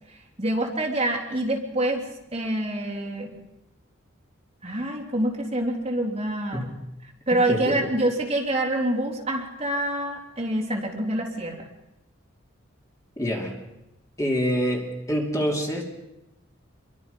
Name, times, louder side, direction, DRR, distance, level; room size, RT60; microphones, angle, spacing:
voice 1, 0.1-2.0 2.3-3.3 4.6-6.7 7.3-11.7, right 1 dB, 30° right, 0 dB, 3.5 m, -26 dB
voice 2, 7.5-7.9 13.2-13.6 14.2-15.8, equal, 15° left, 0 dB, 2.9 m, -26 dB
28.0 x 23.5 x 5.4 m, 0.91 s
head